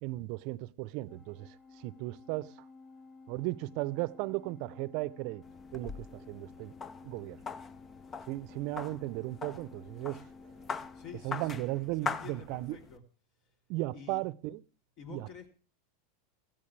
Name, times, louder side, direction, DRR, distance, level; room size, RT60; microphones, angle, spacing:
voice 1, 0.0-1.5 1.8-2.5 3.3-5.4 5.7-6.7 7.0-7.4 8.3-10.3 11.2-12.8 13.7-14.6 15.1-15.2, right 19 dB, 55° right, 0.7 m, -36 dB
Organ, 1.1-12.3, left 3 dB, 10° right, 1.1 m, -54 dB
sound 1, 5.4-13.0, left 5 dB, 25° left, 0.7 m, -42 dB
voice 2, 10.9-13.0 13.9-14.2 15.0-15.5, left 7 dB, 55° left, 3.5 m, -49 dB
16.5 x 15.0 x 3.3 m
hypercardioid pair, 105°, 0 cm